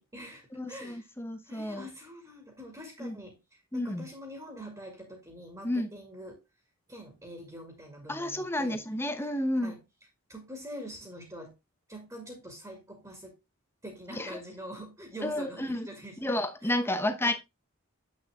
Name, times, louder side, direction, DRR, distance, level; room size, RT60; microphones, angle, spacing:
voice 1, 0.0-1.0 1.4-3.4 3.7-6.4 6.9-8.8 9.6-9.8 10.3-11.5 11.9-13.3 13.8-16.2 16.6-17.3, equal, 15° right, 2.1 m, -44 dB
voice 2, 0.5-1.9 3.0-3.2 3.7-4.1 5.6-5.9 8.1-9.7 14.1-14.4 15.2-15.9 16.2-17.3, left 1 dB, 10° left, 0.9 m, -31 dB
7.9 x 6.3 x 3.5 m
head